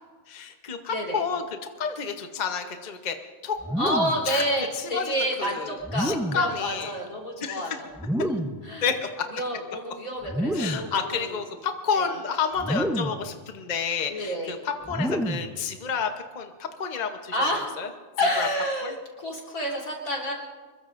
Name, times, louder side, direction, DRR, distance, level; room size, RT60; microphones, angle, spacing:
voice 1, 0.3-1.4 1.8-3.2 3.4-3.6 3.9-4.0 4.3-4.4 4.8-6.9 7.4-7.8 8.8-9.3 10.5-16.1 16.3-17.4 17.8-17.9 18.4-18.5 18.8-18.9, left 6 dB, 35° left, 5 dB, 1.0 m, -30 dB
voice 2, 0.9-1.2 3.8-7.9 8.6-8.9 9.3-11.3 12.0-12.1 14.1-14.6 17.3-17.7 18.2-20.3, equal, 80° left, -2 dB, 4.1 m, -29 dB
sound 1, 3.6-4.3 5.8-6.6 8.0-8.7 10.2-11.0 12.6-13.3 14.8-15.6, equal, 5° right, 0.3 m, -28 dB
25.0 x 21.5 x 2.6 m, 1.5 s
omnidirectional pair, 1.5 m